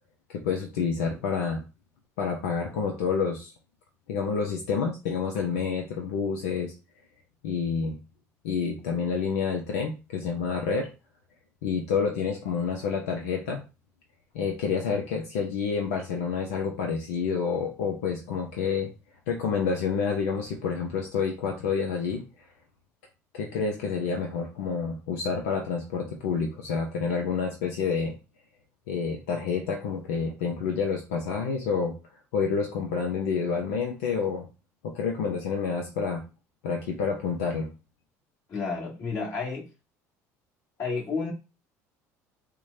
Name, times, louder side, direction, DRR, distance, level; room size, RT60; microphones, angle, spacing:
voice 1, 0.3-1.6 2.2-3.5 4.1-6.7 7.4-8.0 8.4-10.9 11.6-13.6 14.3-18.9 19.3-22.2 23.3-28.1 28.9-32.0 32.3-34.4 34.8-36.2 36.6-37.7, left 5 dB, 80° left, 0.6 m, -28 dB
voice 2, 38.5-39.7 40.8-41.3, left 4 dB, 45° left, 1.8 m, -31 dB
4.6 x 2.2 x 2.7 m
hypercardioid pair, 70°, 8 cm